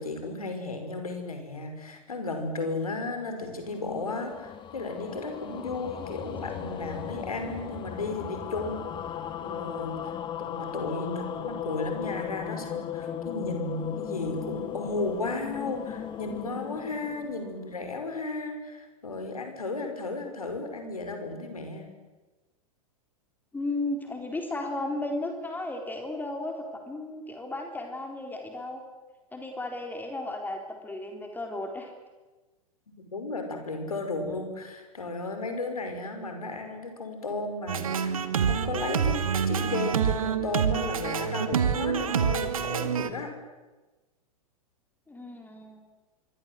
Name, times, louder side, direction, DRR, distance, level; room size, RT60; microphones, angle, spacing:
voice 1, 0.0-21.9 33.1-43.3, left 2 dB, 75° left, 6 dB, 5.5 m, -34 dB
sound 1, 3.6-18.0, left 9 dB, 25° left, 1.8 m, -37 dB
voice 2, 23.5-26.5 26.9-28.8 29.3-31.9 45.1-45.8, left 2 dB, 10° left, 3 dB, 4.0 m, -34 dB
sound 2, 37.7-43.1, right 7 dB, 65° right, 2.0 m, -27 dB
26.5 x 24.0 x 7.8 m, 1.2 s
figure-of-eight pair, 95°, 19 cm